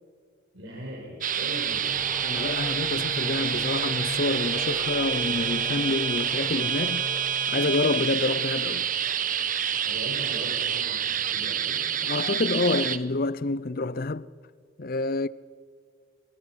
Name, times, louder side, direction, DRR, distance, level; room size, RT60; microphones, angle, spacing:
voice 1, 0.5-1.9 9.8-11.9, equal, 55° right, 5.5 m, -39 dB
sound 1, 1.2-13.0, right 9 dB, 40° right, 0.9 m, -28 dB
sound 2, 1.5-8.8, equal, ahead, 7.4 m, -38 dB
voice 2, 2.2-7.1 7.5-8.9 12.0-14.3 14.8-15.3, left 3 dB, 45° left, 0.5 m, -28 dB
27.0 x 26.5 x 6.1 m
head